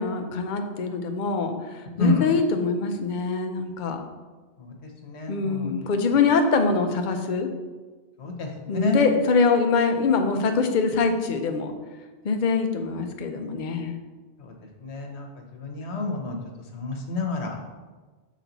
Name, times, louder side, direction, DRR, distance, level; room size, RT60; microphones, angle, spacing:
voice 1, 0.0-4.0 5.3-7.5 8.7-11.7 12.2-14.0, left 4 dB, 50° left, 5 dB, 0.7 m, -24 dB
voice 2, 5.0-5.7 8.2-9.0 14.8-15.3 15.5-16.4 16.7-17.5, left 3 dB, 70° left, 2 dB, 1.3 m, -28 dB
7.1 x 4.4 x 4.0 m, 1.3 s
omnidirectional pair, 1.2 m